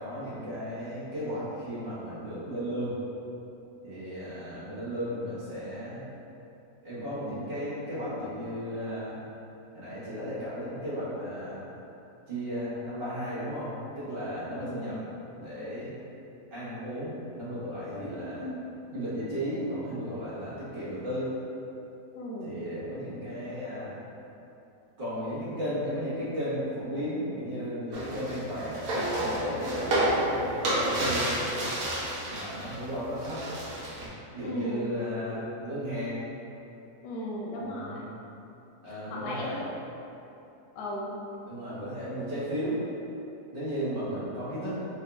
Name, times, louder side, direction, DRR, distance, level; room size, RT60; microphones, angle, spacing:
voice 1, 0.0-3.0 3.8-6.0 6.8-9.2 9.7-11.6 12.3-15.0 15.4-15.9 16.5-18.4 18.9-21.3 22.4-23.9 25.0-28.8 29.2-31.3 32.3-33.4 34.3-36.2 37.7-38.0 38.8-39.6 41.4-42.8 43.5-44.8, equal, 35° right, -11 dB, 1.3 m, -34 dB
voice 2, 14.5-15.0 17.9-18.6 22.1-22.6 34.4-34.9 37.0-38.1 38.9-39.6 40.7-41.1, left 1 dB, 75° left, -4 dB, 1.1 m, -36 dB
sound 1, 27.9-32.8 33.0-34.1, right 1 dB, 70° right, 1.2 m, -30 dB
4.9 x 2.7 x 2.2 m, 2.8 s
omnidirectional pair, 1.8 m